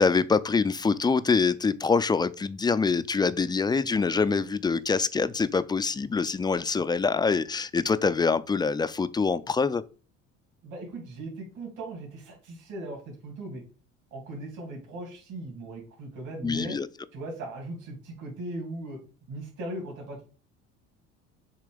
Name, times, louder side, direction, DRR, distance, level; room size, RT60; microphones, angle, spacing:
voice 1, 0.0-9.8 16.4-16.9, left 4 dB, 15° left, 0.3 m, -25 dB
voice 2, 10.6-13.6 14.1-16.8 17.1-19.0 19.3-20.3, right 2 dB, 55° right, 2.7 m, -38 dB
6.7 x 3.0 x 5.0 m
hypercardioid pair, 70°, 35 cm